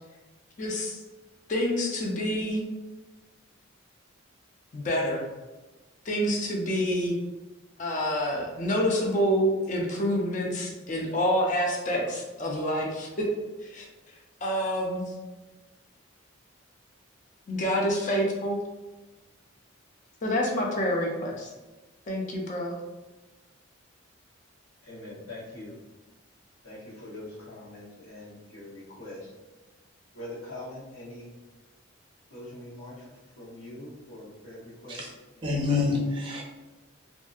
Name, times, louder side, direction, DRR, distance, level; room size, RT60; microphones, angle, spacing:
voice 1, 0.6-1.0 1.5-2.6 4.7-5.3 6.1-7.1 7.8-13.3 13.6-13.8 14.4-15.0 17.5-18.6 20.2-21.5 22.1-22.8, equal, 35° left, 0 dB, 0.5 m, -27 dB
voice 2, 24.8-25.7 26.6-29.3 30.1-31.3 32.3-33.0 33.4-35.0 35.3-35.4, left 1 dB, 85° left, -8 dB, 1.1 m, -43 dB
voice 3, 35.4-36.4, left 4 dB, 25° right, -2 dB, 0.5 m, -27 dB
2.6 x 2.5 x 2.3 m, 1.2 s
head